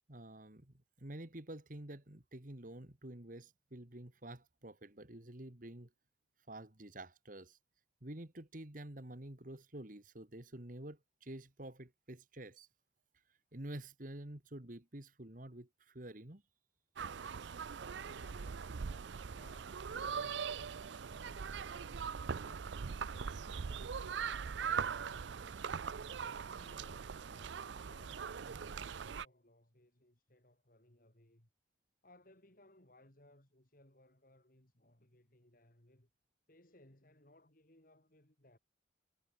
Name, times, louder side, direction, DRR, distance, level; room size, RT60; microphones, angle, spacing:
voice 1, 0.1-5.9 6.5-7.6 8.0-12.7 13.1-16.4, right 1 dB, 45° right, 2.1 m, -49 dB
sound 1, 17.0-29.3, right 6 dB, 75° right, 0.5 m, -41 dB
voice 2, 18.0-22.1 22.4-26.1 26.6-31.5 32.0-36.1 36.5-38.6, left 1 dB, 50° left, 3.6 m, -65 dB
head